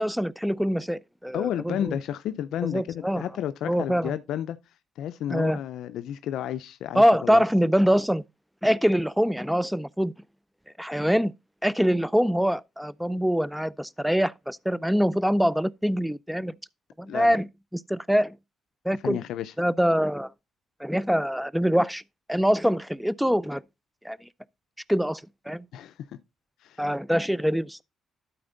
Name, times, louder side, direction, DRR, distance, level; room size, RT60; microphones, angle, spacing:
voice 1, 0.0-2.0 2.6-3.2 3.7-4.1 5.3-5.6 7.0-8.2 8.6-10.1 10.8-11.3 11.6-16.5 17.0-17.5 17.9-18.3 18.9-19.2 19.6-20.3 20.8-22.0 22.3-23.6 24.0-24.2 24.9-25.2 25.5-25.7 26.8-27.8, equal, ahead, 0.3 m, -24 dB
voice 2, 1.3-4.6 5.0-7.4 17.1-17.4 18.9-19.5 25.7-26.0 26.6-26.9, left 11 dB, 80° left, 0.4 m, -32 dB
12.5 x 4.4 x 3.8 m
cardioid pair, 90°, 0 cm